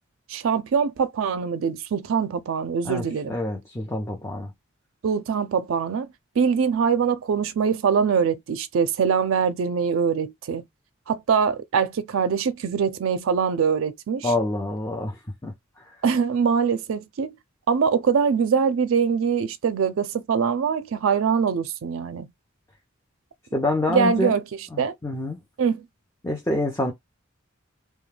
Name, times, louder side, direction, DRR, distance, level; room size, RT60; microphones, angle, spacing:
voice 1, 0.3-3.3 5.0-6.1 6.4-10.6 11.1-14.3 16.0-17.4 17.7-22.3 23.9-24.4 24.8-25.0 25.6-25.9, right 6 dB, 75° right, 0.4 m, -23 dB
voice 2, 2.8-4.5 14.2-15.5 23.5-24.4 24.7-25.4 26.2-26.9, left 2 dB, 15° left, 0.5 m, -27 dB
2.2 x 2.2 x 3.2 m
head